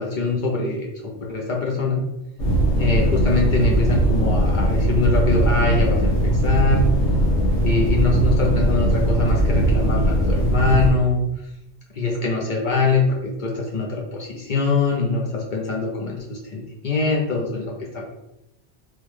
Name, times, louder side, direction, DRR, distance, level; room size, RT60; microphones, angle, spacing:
voice 1, 0.0-2.0 2.8-6.2 6.4-6.8 7.6-11.2 11.9-18.1, left 3 dB, 55° left, -2 dB, 0.6 m, -23 dB
sound 1, 2.4-10.9, right 1 dB, 90° left, 1.3 m, -19 dB
3.1 x 2.1 x 3.3 m, 0.90 s
omnidirectional pair, 1.2 m